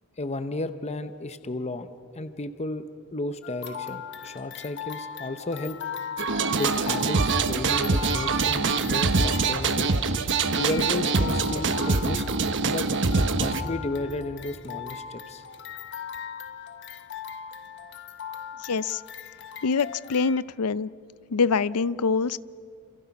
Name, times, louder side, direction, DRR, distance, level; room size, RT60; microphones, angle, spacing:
voice 1, 0.2-2.9 3.1-5.8 6.6-9.9 10.6-12.2 12.6-12.9 13.4-15.4, left 2 dB, 30° left, 10 dB, 0.8 m, -33 dB
sound 1, 3.4-20.4, left 8 dB, 55° left, 1.1 m, -39 dB
sound 2, 6.2-13.6, right 4 dB, 60° right, 1.1 m, -24 dB
voice 2, 18.6-19.0 19.6-20.9 21.3-22.4, left 5 dB, 85° left, 18 dB, 0.5 m, -25 dB
28.5 x 27.0 x 6.0 m, 2.4 s
head